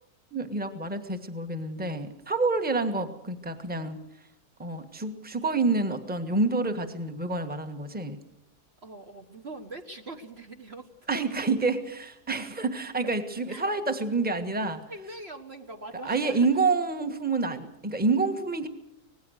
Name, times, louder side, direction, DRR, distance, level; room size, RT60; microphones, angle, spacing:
voice 1, 0.3-4.0 4.6-8.2 11.1-14.9 16.0-18.7, right 3 dB, 5° right, 7 dB, 1.4 m, -28 dB
voice 2, 8.8-10.9 13.5-13.6 14.9-16.5, right 2 dB, 45° right, 5 dB, 1.5 m, -42 dB
25.5 x 19.0 x 6.5 m, 0.79 s
omnidirectional pair, 1.6 m